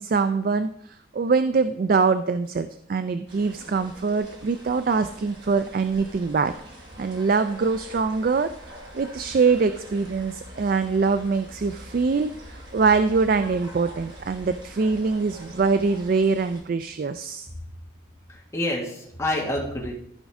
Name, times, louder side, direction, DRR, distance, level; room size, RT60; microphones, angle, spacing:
voice 1, 0.0-6.5 7.0-8.5 8.9-17.5, right 4 dB, 45° right, 11 dB, 0.3 m, -23 dB
sound 1, 3.3-16.6, equal, 65° right, 2.7 m, -44 dB
voice 2, 18.3-19.9, left 1 dB, 15° left, -3 dB, 1.9 m, -28 dB
13.5 x 5.2 x 3.6 m, 0.70 s
head